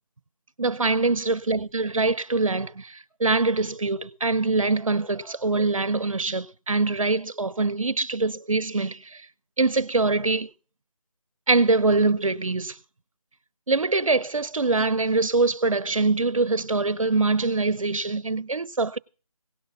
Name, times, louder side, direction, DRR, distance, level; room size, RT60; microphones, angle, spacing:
voice 1, 0.6-9.2 9.6-10.5 11.5-12.7 13.7-19.0, right 3 dB, 60° right, 0.9 m, -24 dB
17.5 x 6.5 x 7.0 m
figure-of-eight pair, 160°, 19 cm